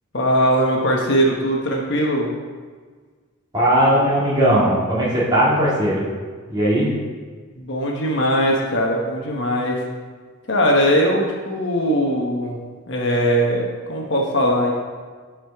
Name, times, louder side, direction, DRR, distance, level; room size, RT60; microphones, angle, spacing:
voice 1, 0.1-2.3 7.5-9.8 10.5-12.6 12.9-14.7, equal, 55° left, -1 dB, 1.1 m, -20 dB
voice 2, 3.5-6.1 6.5-6.9, right 1 dB, 20° right, -8 dB, 2.3 m, -18 dB
12.5 x 5.0 x 3.5 m, 1.5 s
head